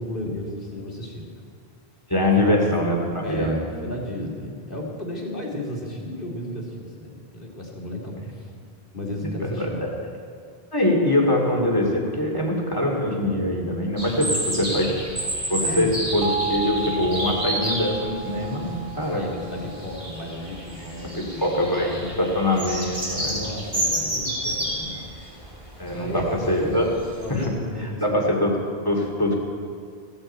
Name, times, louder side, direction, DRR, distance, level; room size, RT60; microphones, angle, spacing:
voice 1, 0.0-1.5 2.2-2.6 3.2-8.5 8.9-10.0 14.3-15.0 15.6-16.1 19.1-22.4 23.0-25.1 25.9-26.8 27.2-28.3, left 1 dB, 55° left, -3 dB, 3.0 m, -34 dB
voice 2, 2.1-3.0 3.3-3.6 9.4-9.9 10.7-14.9 15.5-19.2 21.1-23.4 25.8-26.9 27.3-27.5 28.0-29.4, left 1 dB, 20° left, -1 dB, 2.5 m, -23 dB
sound 1, 14.0-27.5, right 1 dB, 30° right, 2.8 m, -31 dB
sound 2, 16.2-21.0, right 5 dB, 70° right, 0.8 m, -33 dB
16.5 x 16.5 x 4.5 m, 2.3 s
omnidirectional pair, 1.1 m